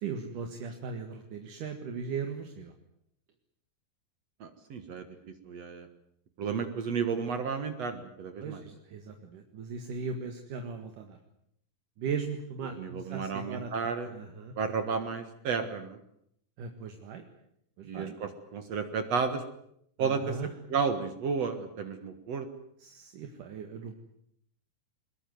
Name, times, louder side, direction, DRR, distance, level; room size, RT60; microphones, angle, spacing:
voice 1, 0.0-2.7 8.4-11.2 12.0-13.7 14.1-14.5 16.6-17.2 17.8-18.2 20.0-20.5 22.8-24.0, right 5 dB, 75° right, 5 dB, 3.3 m, -38 dB
voice 2, 4.4-5.1 5.4-5.9 6.4-8.6 12.7-14.1 14.6-16.0 17.8-19.4 20.0-20.4 20.7-22.5, right 5 dB, 55° right, 8 dB, 2.5 m, -32 dB
22.5 x 21.0 x 9.3 m, 0.73 s
omnidirectional pair, 3.8 m